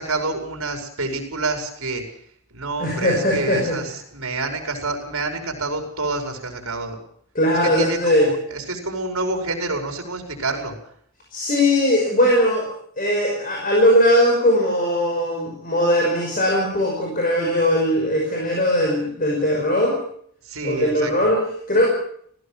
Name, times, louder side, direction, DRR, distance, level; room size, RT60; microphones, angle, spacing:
voice 1, 0.0-2.0 2.5-7.0 7.6-10.8 20.4-21.1, right 3 dB, 70° right, 4 dB, 5.4 m, -28 dB
voice 2, 2.8-3.8 7.4-8.3 11.3-12.7 13.0-20.0 20.6-21.9, left 1 dB, 40° left, -1 dB, 5.5 m, -19 dB
19.0 x 15.5 x 9.0 m, 0.64 s
head